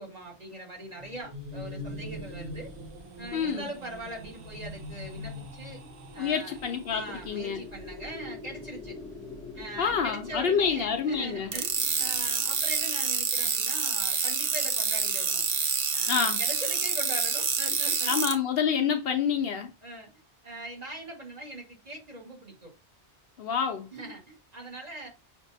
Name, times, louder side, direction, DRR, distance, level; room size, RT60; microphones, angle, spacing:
voice 1, 0.0-2.7 3.2-5.8 6.1-6.6 6.9-9.0 9.5-15.4 15.9-18.3 18.8-19.0 19.8-20.1 20.4-22.7 23.9-25.1, right 1 dB, 40° right, 1.5 m, -41 dB
sound 1, 0.8-7.8, left 1 dB, 90° right, 1.0 m, -43 dB
voice 2, 3.3-3.6 6.2-7.6 9.8-11.5 16.1-16.4 18.1-19.7 23.4-23.9, left 7 dB, 65° left, 0.8 m, -27 dB
sound 2, 5.7-14.1, left 3 dB, 5° left, 0.6 m, -45 dB
sound 3, 11.5-18.3, right 6 dB, 55° right, 0.8 m, -27 dB
6.0 x 2.6 x 2.6 m
omnidirectional pair, 1.1 m